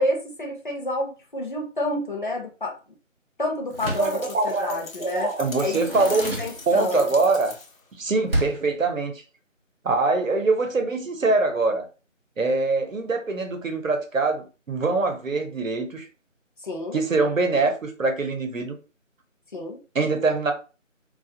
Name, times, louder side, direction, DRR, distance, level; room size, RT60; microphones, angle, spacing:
voice 1, 0.0-2.8 3.4-4.2 4.4-5.3 5.6-5.8 6.4-7.1 16.6-17.0 19.5-19.8, left 1 dB, 40° left, 0.5 m, -29 dB
sound 1, 3.7-7.9, left 3 dB, 85° left, 0.8 m, -40 dB
Door, 3.7-4.2 5.4-7.1 8.3-8.8, right 1 dB, 50° right, 0.5 m, -30 dB
voice 2, 4.0-6.4 6.7-7.5 8.0-9.2 9.8-11.9 12.4-16.1 16.9-18.8 19.9-20.5, right 3 dB, 80° right, 0.8 m, -23 dB
2.3 x 2.1 x 2.6 m
figure-of-eight pair, 170°, 39 cm